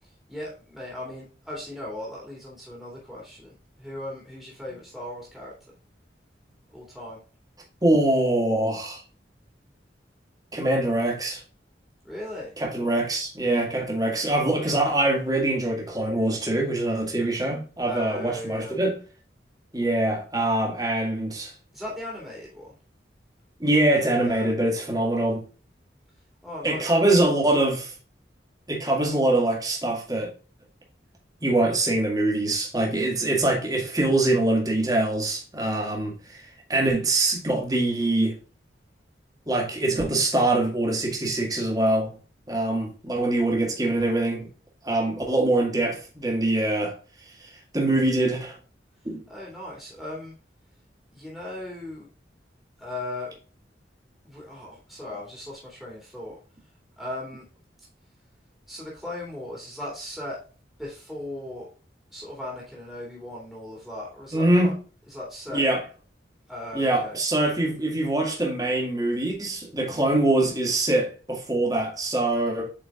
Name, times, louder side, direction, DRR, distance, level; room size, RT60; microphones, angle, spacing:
voice 1, 0.3-5.5 6.7-7.2 12.0-12.5 17.8-18.8 21.7-22.7 24.1-24.5 26.4-26.8 49.3-50.3 51.1-52.1 52.8-53.4 54.2-56.4 57.0-57.5 58.7-60.4 60.8-61.7 62.1-64.7 65.1-65.6 66.5-67.2, left 1 dB, ahead, 2.4 m, -37 dB
voice 2, 7.8-9.0 10.5-11.4 12.6-19.0 19.7-21.5 23.6-25.4 26.6-27.9 28.7-30.3 31.4-36.4 36.7-38.4 39.5-42.1 42.5-44.5 44.8-47.0 47.4-48.6 49.0-49.2 64.3-64.7 65.5-65.8 66.7-72.7, right 2 dB, 20° right, 2.0 m, -24 dB
8.1 x 4.9 x 2.4 m
head